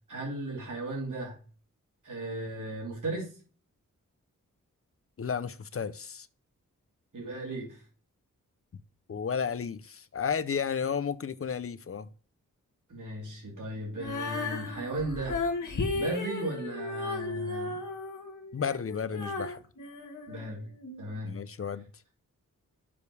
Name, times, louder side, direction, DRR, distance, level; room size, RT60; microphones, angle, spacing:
voice 1, 0.1-1.4 2.0-3.3 7.1-7.8 12.9-15.4 15.9-17.7 20.3-20.7 21.0-21.3, right 2 dB, 70° right, 3.2 m, -36 dB
voice 2, 5.2-6.3 9.1-12.1 18.5-19.6 21.2-21.9, left 6 dB, 45° left, 0.6 m, -32 dB
Female singing, 14.0-21.0, left 3 dB, 65° left, 1.7 m, -35 dB
7.0 x 5.2 x 4.8 m
wide cardioid pair, 70°, 32 cm